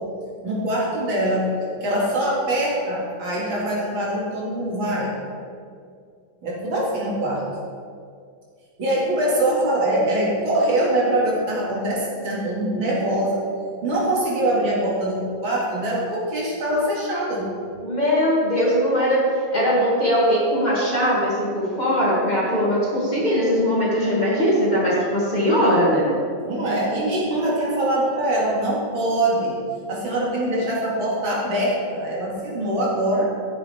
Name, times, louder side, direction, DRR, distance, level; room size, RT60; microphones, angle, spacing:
voice 1, 0.4-1.5 1.8-5.2 6.4-7.4 8.8-13.4 13.8-17.7 26.4-29.6 29.9-33.3, right 1 dB, 80° right, -5 dB, 2.8 m, -23 dB
voice 2, 17.8-19.3 19.5-26.2, equal, 20° left, -6 dB, 2.0 m, -20 dB
13.5 x 7.2 x 3.4 m, 2.3 s
omnidirectional pair, 2.2 m